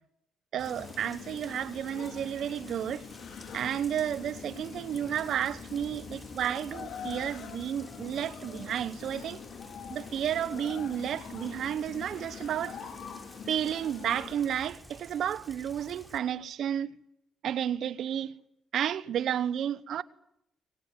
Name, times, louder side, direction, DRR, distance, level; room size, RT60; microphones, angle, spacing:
voice 1, 0.5-3.0 3.5-9.4 9.9-12.8 13.5-16.9 17.4-18.4 18.7-20.0, right 9 dB, 70° right, 1.1 m, -32 dB
sound 1, 0.6-14.3, left 7 dB, 65° left, 4.8 m, -44 dB
Rain, 0.6-16.2, equal, ahead, 4.4 m, -50 dB
23.0 x 19.5 x 9.9 m
cardioid pair, 90°, 0 cm